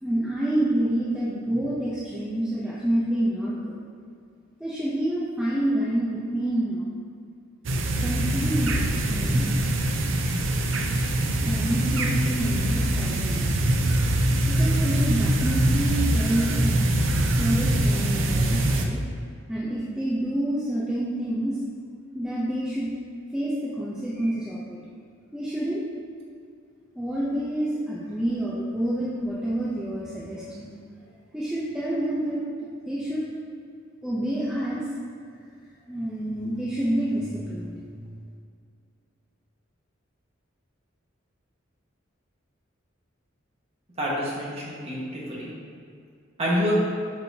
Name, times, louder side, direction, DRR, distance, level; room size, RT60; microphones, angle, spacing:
voice 1, 0.0-3.8 4.6-6.9 8.0-9.5 11.4-13.5 14.5-16.8 17.4-19.0 19.5-21.6 22.1-22.9 23.3-24.8 25.3-25.9 27.0-30.7 31.3-32.4 32.9-33.2 34.0-34.9 35.9-38.0, right 1 dB, 5° right, -8 dB, 0.7 m, -28 dB
sound 1, 7.6-18.8, right 1 dB, 75° right, 0.6 m, -23 dB
voice 2, 44.0-45.5 46.4-46.7, equal, 30° right, -6 dB, 1.6 m, -27 dB
7.8 x 5.5 x 2.9 m, 2.3 s
head